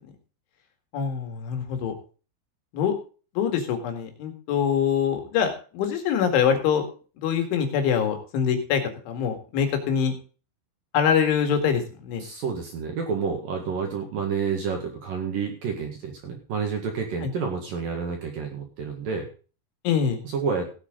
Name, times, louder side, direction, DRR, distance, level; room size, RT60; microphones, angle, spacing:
voice 1, 0.9-1.9 2.7-2.9 3.4-6.8 7.2-8.8 9.1-10.1 10.9-12.2 17.2-17.3 19.8-20.2, left 7 dB, 70° left, 5 dB, 4.3 m, -24 dB
voice 2, 12.2-19.3 20.2-20.7, right 5 dB, 55° right, 2 dB, 2.7 m, -29 dB
17.5 x 8.5 x 3.8 m, 0.37 s
omnidirectional pair, 5.9 m